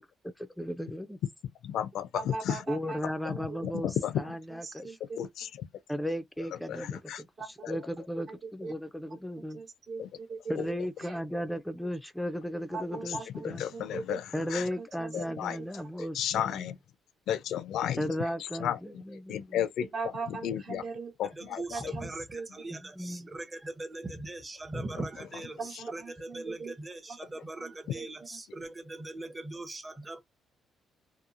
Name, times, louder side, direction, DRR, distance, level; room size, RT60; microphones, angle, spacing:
voice 1, 0.2-1.2 2.7-5.0 5.9-9.6 10.5-13.6 14.3-16.7 18.0-19.7 22.7-23.3, equal, 5° left, 0.3 m, -36 dB
voice 2, 1.6-2.6 3.3-3.4 3.6-4.1 5.2-5.6 6.7-7.2 7.6-7.7 10.0-10.1 13.4-14.6 15.1-15.6 16.1-16.8 17.3-18.0 18.6-18.8 19.3-19.9 20.3-20.8 21.2-21.9 27.9-28.0, left 10 dB, 80° left, 0.4 m, -33 dB
voice 3, 2.1-3.0 3.3-3.6 4.6-5.2 7.4-7.7 8.3-8.7 9.5-10.5 12.7-14.2 15.0-15.4 19.8-21.1 21.4-22.5 25.6-26.7 27.1-27.2 27.6-28.1, right 4 dB, 55° right, 0.8 m, -40 dB
voice 4, 21.3-30.2, right 2 dB, 20° right, 0.7 m, -40 dB
2.8 x 2.3 x 2.4 m
cardioid pair, 90°, 0 cm